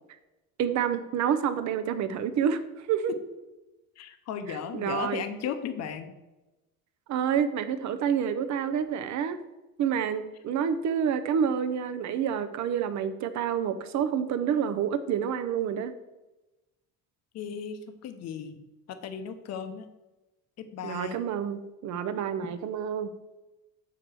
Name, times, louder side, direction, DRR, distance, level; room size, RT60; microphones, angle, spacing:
voice 1, 0.6-3.1 4.5-5.3 7.1-9.4 9.8-15.9 20.8-23.1, right 8 dB, 50° right, 11 dB, 0.7 m, -28 dB
voice 2, 4.0-6.1 17.3-19.9 20.6-21.2, left 7 dB, 45° left, 8 dB, 0.7 m, -36 dB
6.7 x 4.8 x 6.1 m, 1.1 s
cardioid pair, 160°, 36 cm